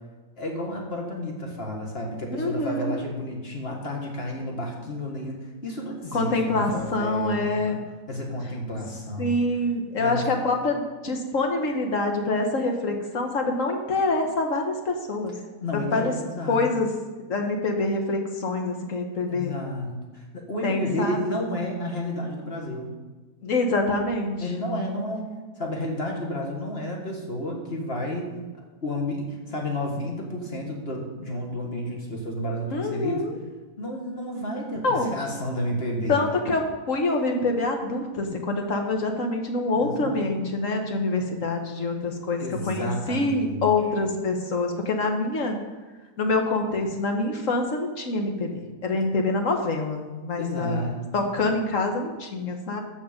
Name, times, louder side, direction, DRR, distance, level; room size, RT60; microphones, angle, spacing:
voice 1, 0.4-7.8 8.1-9.4 10.0-10.3 15.6-16.7 19.3-22.9 24.4-25.3 25.6-28.4 28.8-33.3 33.8-36.2 39.8-40.3 42.4-43.7 50.4-51.3, left 1 dB, 40° left, 0 dB, 2.0 m, -31 dB
voice 2, 2.3-3.0 6.1-7.8 9.2-15.3 15.9-16.1 16.5-16.9 17.3-19.5 20.6-21.2 23.4-24.5 32.7-33.3 34.8-35.1 36.1-45.6 46.2-50.9 51.1-52.8, left 2 dB, 55° left, 3 dB, 1.6 m, -26 dB
14.5 x 5.4 x 5.2 m, 1.3 s
omnidirectional pair, 1.7 m